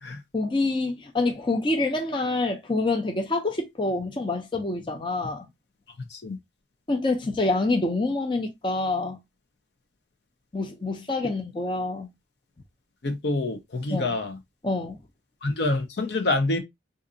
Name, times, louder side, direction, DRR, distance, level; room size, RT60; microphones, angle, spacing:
voice 1, 0.3-5.5 6.9-9.2 10.5-12.1 13.9-14.2 14.6-15.0, left 2 dB, 25° left, 0.5 m, -26 dB
voice 2, 13.0-14.4 15.4-16.6, left 2 dB, 70° left, 0.7 m, -26 dB
3.9 x 2.6 x 2.5 m
head